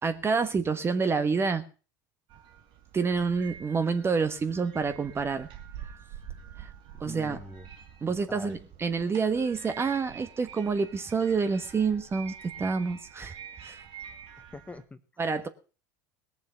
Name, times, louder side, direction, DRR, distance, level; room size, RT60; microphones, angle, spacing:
voice 1, 0.0-1.6 2.9-5.5 6.6-6.7 7.0-7.4 8.0-13.8 15.2-15.5, right 5 dB, 25° right, 1.3 m, -28 dB
sound 1, 2.3-14.8, right 8 dB, 55° right, 2.3 m, -47 dB
voice 2, 7.0-7.7 8.1-8.6 14.4-15.0, left 3 dB, 15° left, 1.3 m, -44 dB
19.5 x 7.3 x 5.7 m
hypercardioid pair, 80°, 10 cm